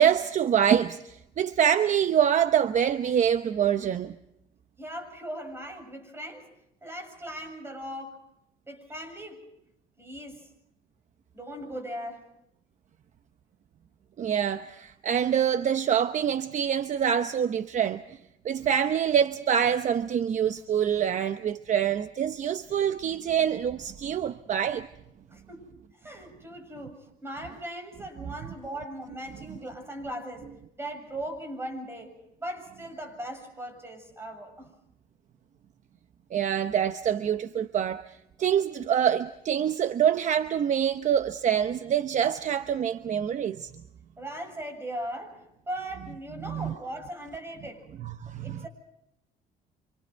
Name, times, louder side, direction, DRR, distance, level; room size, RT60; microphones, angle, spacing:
voice 1, 0.0-4.1 14.2-18.0 18.4-24.9 36.3-38.0 38.4-43.7 46.5-46.7 48.3-48.6, right 9 dB, 45° right, 0.8 m, -25 dB
voice 2, 4.8-6.5 6.8-8.2 8.7-9.5 10.0-10.5 11.3-12.3 25.3-25.7 26.0-30.5 30.8-34.7 44.2-47.9 48.4-48.7, right 1 dB, 15° right, 7.3 m, -39 dB
27.5 x 26.5 x 4.6 m
cardioid pair, 110°, 17 cm